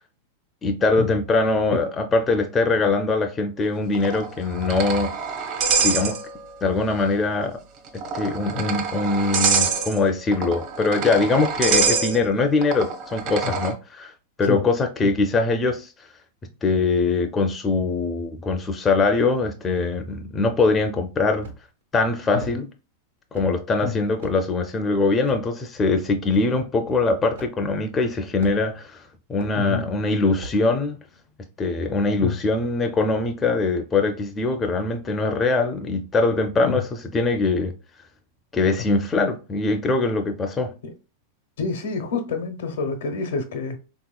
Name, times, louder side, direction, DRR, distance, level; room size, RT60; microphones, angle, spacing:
voice 1, 0.6-5.1 5.8-6.2 6.6-7.6 8.1-14.1 14.4-15.9 16.6-21.5 21.9-22.7 23.3-29.0 29.3-31.0 31.6-37.7 38.5-40.7, left 3 dB, 20° left, 0.4 m, -22 dB
sound 1, 3.9-6.6 6.9-7.0 7.9-13.7, right 5 dB, 45° right, 0.7 m, -25 dB
sound 2, 21.4-21.8 22.4-22.6 23.3-23.5 24.2-24.4 25.2-25.4 26.3-26.4 27.3-27.5 28.4-28.8 29.4-29.6 30.4-30.6, right 2 dB, 90° right, 1.0 m, -39 dB
voice 2, 41.6-43.8, left 5 dB, 80° left, 0.9 m, -27 dB
3.6 x 2.9 x 2.2 m
supercardioid pair, 140°, 0 cm